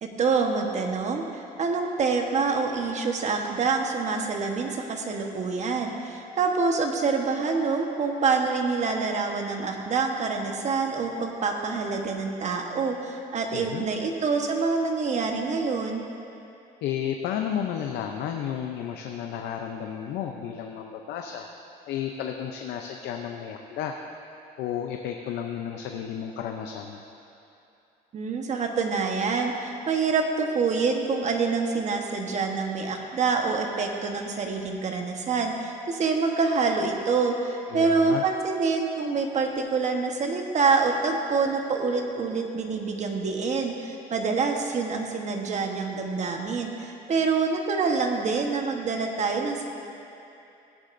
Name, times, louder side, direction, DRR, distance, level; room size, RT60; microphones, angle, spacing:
voice 1, 0.0-16.0 28.1-49.6, right 4 dB, 45° right, 3 dB, 1.2 m, -26 dB
voice 2, 13.5-13.9 16.8-21.5 21.9-23.9 24.6-27.0 37.7-38.2, left 9 dB, 80° left, 3 dB, 0.6 m, -32 dB
16.5 x 9.7 x 2.6 m, 2.8 s
cardioid pair, 110°, 17 cm